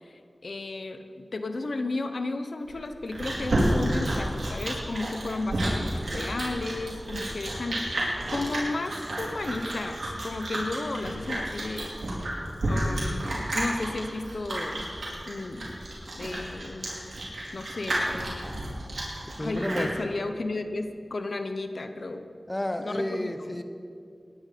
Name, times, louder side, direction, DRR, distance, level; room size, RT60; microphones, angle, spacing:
voice 1, 0.0-8.0 8.3-12.0 12.2-14.9 15.3-15.8 16.1-16.9 17.5-18.6 19.4-22.3 22.8-23.6, left 2 dB, 75° left, 8 dB, 1.0 m, -34 dB
Chewing mastication, 2.7-19.9, right 1 dB, 85° right, 4.1 m, -31 dB
voice 2, 19.4-19.9 22.5-23.6, left 1 dB, 25° left, 8 dB, 1.1 m, -31 dB
19.0 x 10.5 x 5.2 m, 2.4 s
wide cardioid pair, 45°, 0 cm